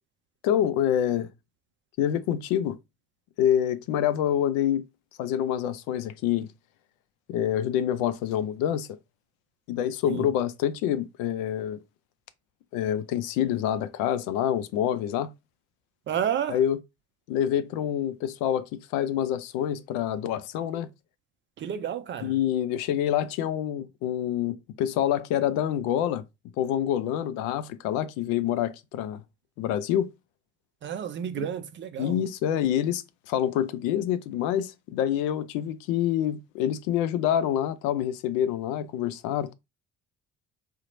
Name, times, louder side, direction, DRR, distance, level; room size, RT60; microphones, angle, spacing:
voice 1, 0.4-1.3 2.0-2.8 3.4-4.8 5.2-6.5 7.3-8.9 9.7-11.8 12.7-15.3 16.5-16.8 17.3-20.9 22.2-26.2 26.6-29.2 29.6-30.1 31.4-31.5 32.0-39.5, left 10 dB, 55° left, 0.4 m, -27 dB
voice 2, 16.1-16.6 21.6-22.3 30.8-32.2, right 9 dB, 30° right, 0.5 m, -31 dB
2.8 x 2.1 x 3.9 m
figure-of-eight pair, 50°, 39 cm